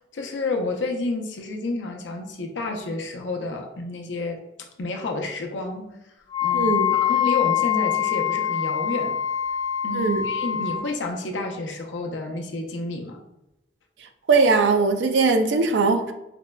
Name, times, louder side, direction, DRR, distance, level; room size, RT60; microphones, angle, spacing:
voice 1, 0.1-5.9 6.4-9.2 9.8-13.2, left 2 dB, 85° left, 3 dB, 0.5 m, -30 dB
Wind instrument woodwind instrument, 6.3-10.8, left 10 dB, 25° left, 0.3 m, -24 dB
voice 2, 6.5-6.9 9.9-10.3 14.3-16.1, right 4 dB, 80° right, 7 dB, 0.4 m, -20 dB
4.9 x 2.1 x 2.2 m, 0.91 s
head